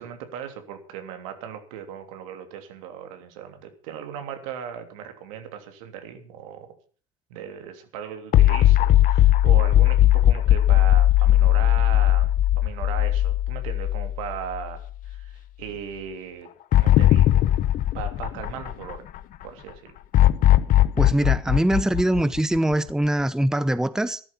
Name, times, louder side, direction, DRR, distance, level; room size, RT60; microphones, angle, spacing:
voice 1, 0.0-6.7 7.3-17.5 17.9-19.1 19.4-19.9, right 8 dB, 75° right, 3.2 m, -37 dB
sound 1, 8.3-14.7 15.0-15.1 16.7-19.2 20.1-22.9, left 13 dB, 50° left, 1.1 m, -18 dB
voice 2, 21.0-24.2, right 1 dB, 5° right, 0.9 m, -22 dB
13.5 x 12.0 x 6.1 m
hypercardioid pair, 85°, 17 cm